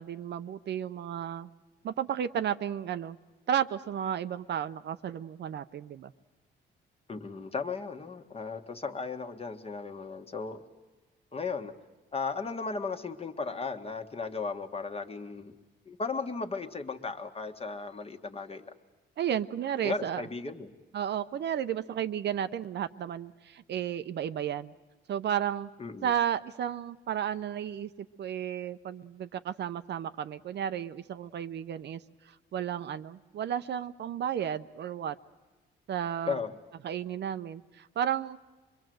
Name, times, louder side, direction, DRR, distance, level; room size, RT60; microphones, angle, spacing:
voice 1, 0.0-1.5 1.8-3.2 3.5-6.1 19.2-20.2 20.9-24.7 25.1-25.7 26.0-27.9 28.2-32.0 32.5-35.2 35.9-36.4 36.8-38.4, right 9 dB, 60° right, 11 dB, 0.7 m, -33 dB
voice 2, 7.1-10.6 11.3-11.7 12.1-15.5 15.8-18.7 19.8-20.7 25.8-26.1 36.2-36.5, left 4 dB, 30° left, 5 dB, 1.5 m, -36 dB
25.0 x 22.5 x 7.8 m, 1.2 s
cardioid pair, 90°, 20 cm